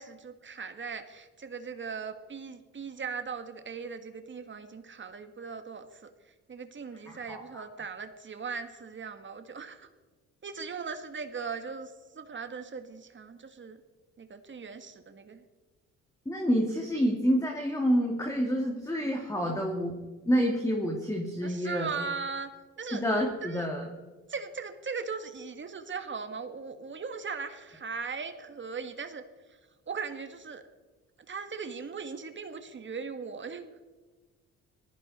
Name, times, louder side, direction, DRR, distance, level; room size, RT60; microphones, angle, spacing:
voice 1, 0.0-6.1 6.5-9.9 10.4-13.8 14.2-15.4 21.4-22.5 22.8-23.0 23.4-23.7 24.3-29.2 29.5-29.6 29.9-30.6 31.3-33.7, right 5 dB, 40° right, 8 dB, 1.6 m, -39 dB
voice 2, 7.1-7.6 16.3-20.0 20.3-21.9 22.9-23.8, equal, 10° left, 0 dB, 2.5 m, -28 dB
18.5 x 15.0 x 4.3 m, 1.3 s
cardioid pair, 90°, 30 cm